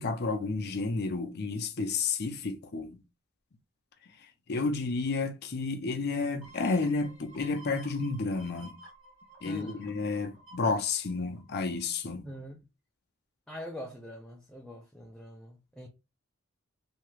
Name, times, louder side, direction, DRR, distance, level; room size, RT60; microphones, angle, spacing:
voice 1, 0.0-3.0 4.5-8.8 9.4-12.3, left 3 dB, 45° left, 0.6 m, -31 dB
sound 1, 6.4-11.9 12.3-12.4, right 1 dB, 60° right, 1.7 m, -53 dB
voice 2, 9.5-9.8 12.2-12.6 13.5-15.9, equal, 5° left, 0.5 m, -44 dB
2.8 x 2.3 x 3.1 m
head